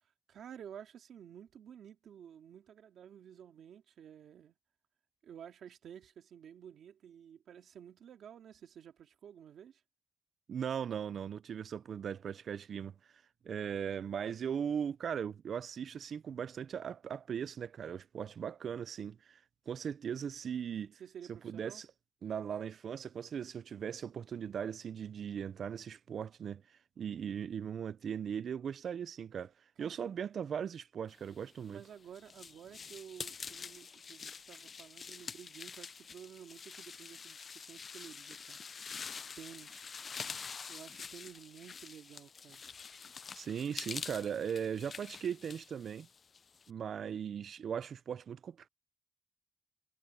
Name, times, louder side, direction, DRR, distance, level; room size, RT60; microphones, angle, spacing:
voice 1, 0.0-4.5 5.2-9.8 20.9-21.8 29.8-30.1 31.6-38.6 39.4-39.9 40.7-42.7, right 9 dB, 90° right, 2.2 m, -52 dB
voice 2, 10.5-12.9 13.4-19.4 19.7-20.9 21.4-21.9 22.2-26.6 27.0-29.5 29.8-31.8 43.3-46.1 46.7-48.7, right 8 dB, 65° right, 0.4 m, -38 dB
sound 1, 31.5-46.7, left 5 dB, 45° left, 0.5 m, -46 dB
wide cardioid pair, 120°, 0 cm